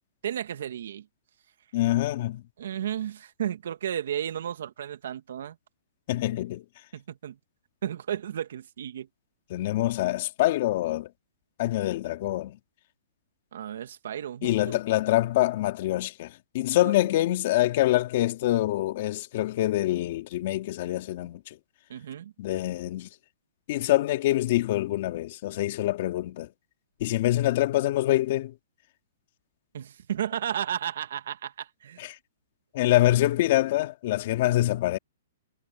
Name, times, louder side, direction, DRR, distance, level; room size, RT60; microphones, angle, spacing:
voice 1, 0.2-1.1 2.6-5.6 6.9-7.4 7.8-9.1 13.5-14.8 16.8-16.9 21.9-22.3 29.7-32.1, right 10 dB, 70° right, 2.1 m, -33 dB
voice 2, 1.7-2.4 6.1-6.6 9.5-11.1 11.6-12.6 14.4-21.4 22.4-23.1 23.7-26.5 27.0-28.5 32.0-32.2 32.7-35.0, left 15 dB, 45° left, 2.6 m, -25 dB
hypercardioid pair, 155°, 0 cm